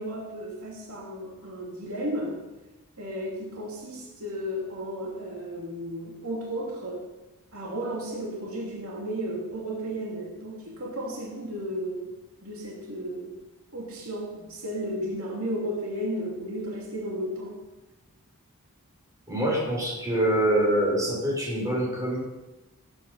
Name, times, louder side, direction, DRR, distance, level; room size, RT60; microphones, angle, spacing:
voice 1, 0.0-2.4 3.0-7.1 7.5-12.1 12.4-13.3 13.7-17.6, equal, 70° right, -2 dB, 2.8 m, -34 dB
voice 2, 19.3-22.2, right 1 dB, 15° right, -4 dB, 5.8 m, -25 dB
18.0 x 9.1 x 5.6 m, 1.1 s
head